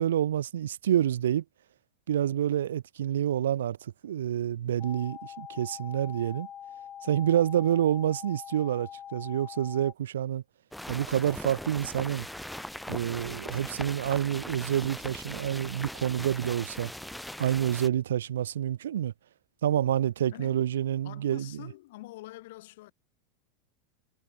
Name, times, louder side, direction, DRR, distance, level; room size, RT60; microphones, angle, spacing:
voice 1, 0.0-1.4 2.1-6.5 7.0-10.4 10.9-12.3 12.9-16.9 17.4-19.1 19.6-21.5, right 10 dB, 90° right, 0.7 m, -28 dB
sound 1, 4.8-9.9, left 9 dB, 30° left, 1.4 m, -44 dB
sound 2, 10.7-17.9, left 1 dB, ahead, 0.5 m, -40 dB
voice 2, 20.3-20.6 21.0-22.9, left 18 dB, 70° left, 2.7 m, -45 dB
hypercardioid pair, 115°, 0 cm